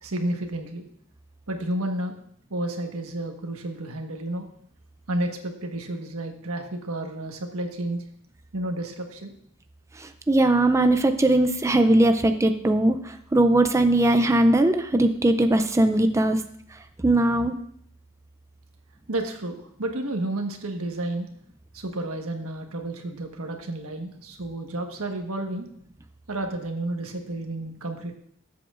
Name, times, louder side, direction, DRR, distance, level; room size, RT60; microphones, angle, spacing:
voice 1, 0.0-0.8 1.5-2.2 2.5-4.5 5.1-8.0 8.5-9.3 19.1-21.3 21.7-25.7 26.3-28.2, right 1 dB, 90° right, 4 dB, 1.4 m, -31 dB
voice 2, 10.0-16.4 17.0-17.5, right 1 dB, 15° right, 8 dB, 0.4 m, -20 dB
19.5 x 7.8 x 2.5 m, 0.68 s
head